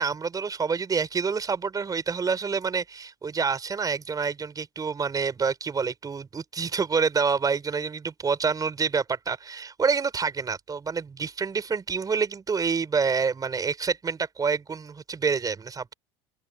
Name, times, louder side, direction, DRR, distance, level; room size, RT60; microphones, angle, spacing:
voice 1, 0.0-15.9, right 5 dB, 25° right, 5.1 m, -27 dB
open air
hypercardioid pair, 90°, 14 cm